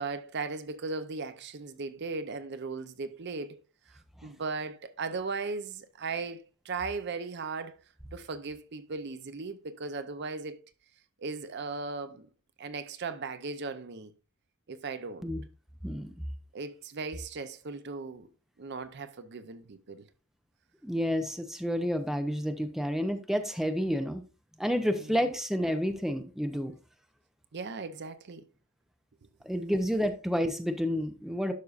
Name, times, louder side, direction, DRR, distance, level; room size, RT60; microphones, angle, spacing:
voice 1, 0.0-3.6 3.9-7.8 8.1-10.6 11.2-12.3 12.6-14.1 14.7-15.3 16.5-18.3 18.6-20.1 25.0-25.3 27.5-28.5, right 4 dB, 55° right, 0.6 m, -37 dB
voice 2, 15.8-16.3 20.8-24.2 24.6-26.7 29.4-31.5, equal, ahead, 0.6 m, -30 dB
11.5 x 5.4 x 2.5 m
head